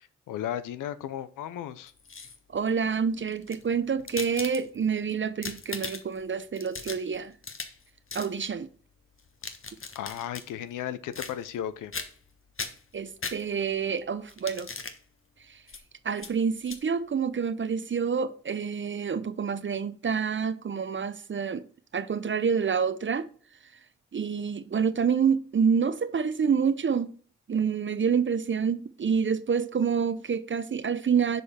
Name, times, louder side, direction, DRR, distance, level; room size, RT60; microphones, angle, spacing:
voice 1, 0.0-1.9 9.9-11.9, left 10 dB, 90° left, 0.6 m, -35 dB
sound 1, 1.9-2.6 3.3-4.9 5.3-6.2 6.6-7.8 8.1-8.3 9.2-10.5 11.1-11.6 11.9-12.3 12.6-13.8 14.3-15.0 15.7-15.8 16.2-16.3 16.6-16.8, left 4 dB, 45° left, 1.2 m, -39 dB
voice 2, 2.5-7.4 8.1-8.7 12.9-14.7 15.4-15.6 16.0-21.7 21.9-23.3 23.6-23.8 24.1-27.1 27.5-31.4, right 6 dB, 40° right, 0.6 m, -27 dB
6.4 x 5.4 x 4.2 m
cardioid pair, 55°, 30 cm